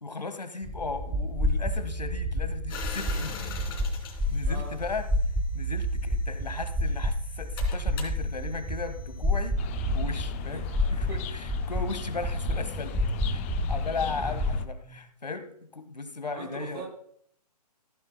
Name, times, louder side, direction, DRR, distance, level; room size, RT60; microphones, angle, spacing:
voice 1, 0.0-3.4 4.3-5.0 5.5-9.6 9.9-12.9 13.3-13.4 13.7-16.8, left 4 dB, 85° left, 9 dB, 1.6 m, -36 dB
sound 1, 0.6-14.7, equal, 5° right, 0.9 m, -29 dB
sound 2, 2.7-5.3 6.2-9.5, left 5 dB, 35° left, 2.9 m, -42 dB
voice 2, 4.4-4.8 10.5-11.2 14.1-14.4 14.8-15.0 16.3-16.9, right 4 dB, 40° right, 0 dB, 3.0 m, -43 dB
sound 3, 9.6-14.6, left 12 dB, 20° left, 0.4 m, -39 dB
15.5 x 9.4 x 2.2 m, 0.64 s
figure-of-eight pair, 135°, 21 cm